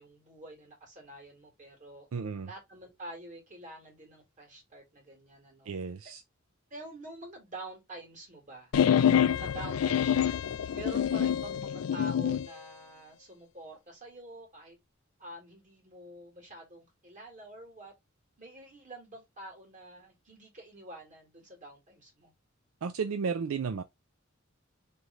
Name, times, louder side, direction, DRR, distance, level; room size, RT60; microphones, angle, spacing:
voice 1, 0.0-2.1 2.5-5.7 6.7-10.4 10.7-14.8 15.2-17.9 18.4-22.3, right 2 dB, 35° right, 2.0 m, -47 dB
voice 2, 2.1-2.5 5.7-6.2 22.8-23.8, right 5 dB, 80° right, 0.4 m, -33 dB
sound 1, 8.7-12.5, left 9 dB, 85° left, 0.3 m, -26 dB
3.4 x 3.2 x 3.8 m
head